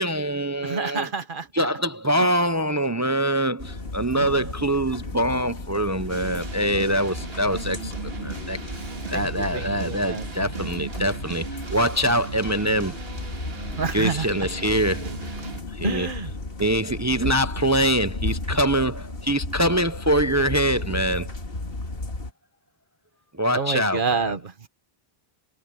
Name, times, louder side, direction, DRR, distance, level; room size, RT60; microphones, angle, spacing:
voice 1, 0.0-1.1 1.5-8.6 9.1-12.9 13.9-15.1 15.8-16.1 16.6-21.3 23.4-24.3, right 1 dB, 25° right, 0.4 m, -24 dB
voice 2, 0.6-1.5 2.2-2.3 4.1-4.5 8.9-10.3 13.8-14.3 15.8-16.3 23.5-24.7, right 4 dB, 55° right, 1.5 m, -29 dB
sound 1, 3.6-22.3, left 2 dB, 65° left, 2.1 m, -34 dB
sound 2, 6.1-15.6, right 5 dB, 70° right, 2.2 m, -37 dB
omnidirectional pair, 1.0 m